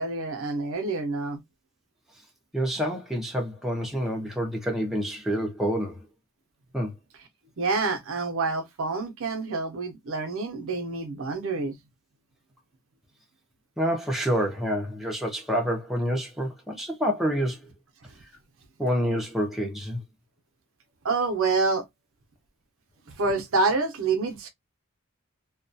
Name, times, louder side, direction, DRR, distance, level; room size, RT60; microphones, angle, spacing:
voice 1, 0.0-1.4 7.6-11.7 21.0-21.8 23.1-24.5, right 3 dB, 70° right, 0.6 m, -27 dB
voice 2, 2.5-6.1 6.7-6.9 13.8-17.7 18.8-20.0, equal, ahead, 0.5 m, -27 dB
2.3 x 2.2 x 2.5 m
head